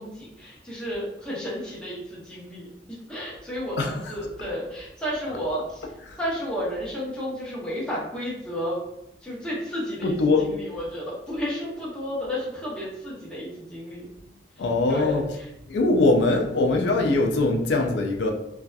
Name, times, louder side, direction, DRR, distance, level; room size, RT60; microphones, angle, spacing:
voice 1, 0.0-2.7 3.1-5.8 6.2-8.8 9.2-14.0 14.9-15.5, equal, 5° left, -7 dB, 0.7 m, -32 dB
voice 2, 3.8-4.2 5.3-5.4 6.0-6.2 10.0-10.5 14.6-15.2 15.7-18.3, left 2 dB, 70° left, 3 dB, 0.4 m, -22 dB
2.7 x 2.3 x 2.2 m, 0.87 s
head